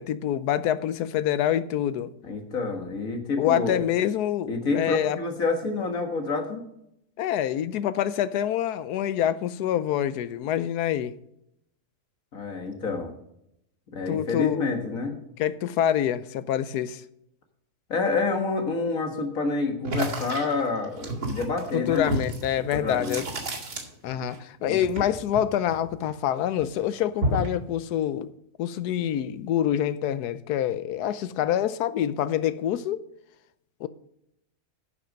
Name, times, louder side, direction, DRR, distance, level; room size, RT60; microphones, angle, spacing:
voice 1, 0.0-2.1 3.4-5.2 7.2-11.1 14.1-14.7 15.4-17.0 21.7-23.3 24.0-28.3 28.6-33.0 33.8-33.9, left 10 dB, 85° left, 1.2 m, -26 dB
voice 2, 2.2-3.8 4.5-6.6 12.3-13.1 13.9-15.2 17.9-22.2 22.6-23.2 24.7-24.8, left 3 dB, 60° left, 2.0 m, -28 dB
sound 1, 19.8-24.4 24.6-26.3 26.6-27.6, right 1 dB, 75° right, 2.8 m, -31 dB
11.0 x 6.7 x 5.1 m
omnidirectional pair, 1.6 m